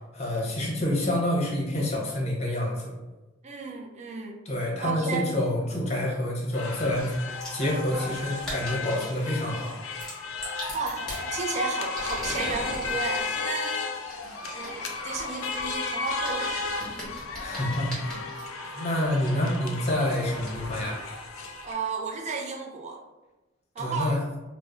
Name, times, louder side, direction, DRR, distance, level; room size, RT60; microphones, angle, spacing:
voice 1, 0.1-2.9 4.4-9.8 17.4-18.3 18.6-21.0 23.8-24.2, left 1 dB, 35° left, -3 dB, 0.7 m, -28 dB
voice 2, 3.4-4.4 4.8-5.3 10.4-13.8 14.5-16.9 21.6-23.0 23.8-24.2, right 4 dB, 35° right, 1 dB, 0.4 m, -33 dB
sound 1, 6.5-21.7, left 4 dB, 90° left, 0.4 m, -34 dB
sound 2, 7.4-7.7 8.3-9.2 9.9-11.2 11.8-13.3 14.1-18.4 19.2-19.3 19.8-19.9 20.4-20.5, equal, 5° left, 1.0 m, -40 dB
2.5 x 2.0 x 3.5 m, 1.1 s
head